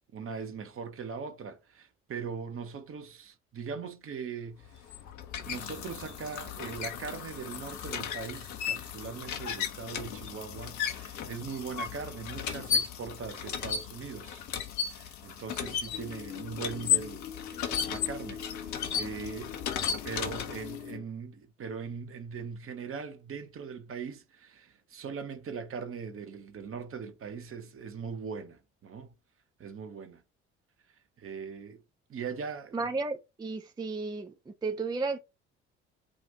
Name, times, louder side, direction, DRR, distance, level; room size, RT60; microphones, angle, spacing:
voice 1, 0.1-4.9 5.4-14.5 14.9-19.5 20.0-29.1 29.6-30.2 31.2-31.8 32.1-32.9, right 6 dB, 40° right, 1.0 m, -40 dB
sound 1, 4.6-20.9, left 8 dB, 60° left, 1.0 m, -35 dB
sound 2, 15.9-21.0, left 8 dB, 85° left, 0.6 m, -43 dB
voice 2, 32.7-34.3 34.6-35.2, right 3 dB, 10° right, 0.4 m, -33 dB
5.1 x 2.5 x 3.9 m
figure-of-eight pair, 50°, 34 cm